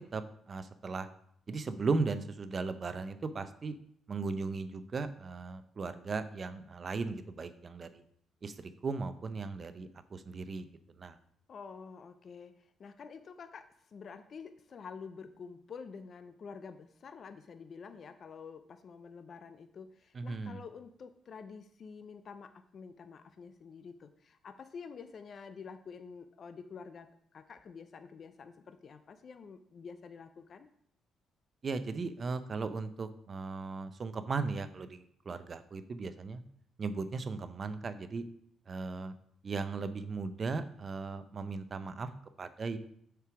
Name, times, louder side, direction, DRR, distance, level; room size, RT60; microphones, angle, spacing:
voice 1, 0.5-1.1 1.5-3.7 4.1-8.0 8.4-10.7 11.0-11.2 20.1-20.6 31.6-36.4 36.8-38.2 38.7-39.1 39.4-42.1 42.4-42.8, right 4 dB, 40° right, 11 dB, 0.6 m, -37 dB
voice 2, 11.5-30.7, left 5 dB, 50° left, 10 dB, 0.5 m, -48 dB
6.6 x 4.7 x 4.9 m, 0.68 s
cardioid pair, 90°, 0 cm